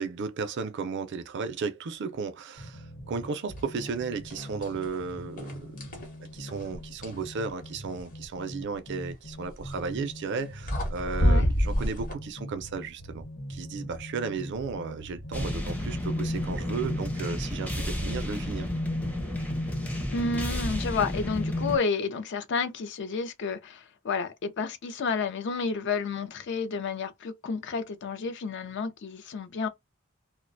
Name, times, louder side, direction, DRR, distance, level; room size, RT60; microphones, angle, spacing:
voice 1, 0.0-5.7 6.2-13.2 13.5-18.7, right 5 dB, 55° right, 0.4 m, -34 dB
sound 1, 2.6-17.0, equal, 85° left, 1.0 m, -42 dB
sound 2, 3.8-4.0 4.3-4.9 5.4-7.2 9.4-9.7 10.4-10.5 10.7-12.1, equal, 40° left, 0.8 m, -27 dB
sound 3, 15.3-21.8, left 1 dB, 5° left, 0.5 m, -31 dB
voice 2, 20.1-29.7, left 4 dB, 55° left, 0.4 m, -31 dB
2.4 x 2.1 x 2.5 m
head